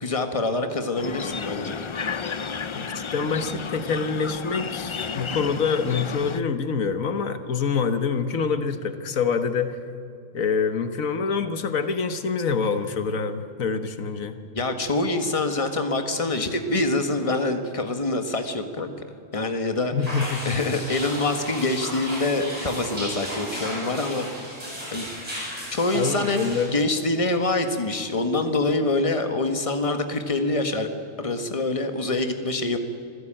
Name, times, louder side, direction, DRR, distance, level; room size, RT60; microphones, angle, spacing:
voice 1, 0.0-1.8 14.5-19.0 19.3-19.9 20.4-24.3 24.9-25.1 25.7-26.4 26.7-30.9 31.2-32.8, left 2 dB, 25° left, 7 dB, 1.6 m, -25 dB
sound 1, 1.0-6.4, left 5 dB, 50° left, 0.3 m, -32 dB
voice 2, 2.8-9.8 10.3-14.3 19.9-20.6 25.9-26.7, left 5 dB, 85° left, 9 dB, 1.6 m, -26 dB
sound 2, 20.0-26.6, equal, 25° right, 8.0 m, -34 dB
26.5 x 15.5 x 8.9 m, 2.5 s
omnidirectional pair, 1.4 m